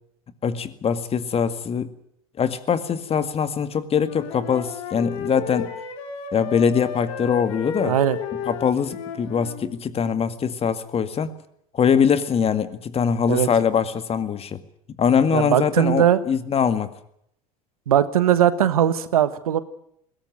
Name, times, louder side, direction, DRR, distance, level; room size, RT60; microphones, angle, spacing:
voice 1, 0.4-1.9 2.4-5.7 6.3-8.0 8.5-11.3 11.7-14.6 15.0-16.9, left 7 dB, 35° left, 11 dB, 2.1 m, -22 dB
Wind instrument woodwind instrument, 4.0-9.6, left 7 dB, 70° left, 3.8 m, -33 dB
voice 2, 7.8-8.2 13.3-13.5 15.3-16.2 17.9-19.6, right 10 dB, 80° right, 14 dB, 1.4 m, -19 dB
21.0 x 17.5 x 9.3 m, 0.72 s
hypercardioid pair, 75°, 18 cm